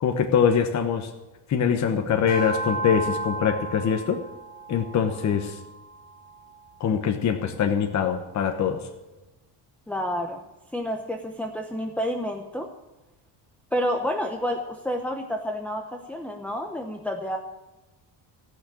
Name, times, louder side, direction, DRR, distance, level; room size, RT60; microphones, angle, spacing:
voice 1, 0.0-1.1 1.5-4.2 4.7-5.6 6.8-8.8, left 7 dB, 40° left, 5 dB, 1.1 m, -23 dB
sound 1, 2.3-6.9, right 2 dB, 30° right, 3.3 m, -34 dB
voice 2, 9.9-10.4 10.7-12.7 13.7-17.4, equal, 5° left, 2 dB, 0.8 m, -29 dB
17.0 x 6.3 x 8.7 m, 1.1 s
cardioid pair, 155°, 45 cm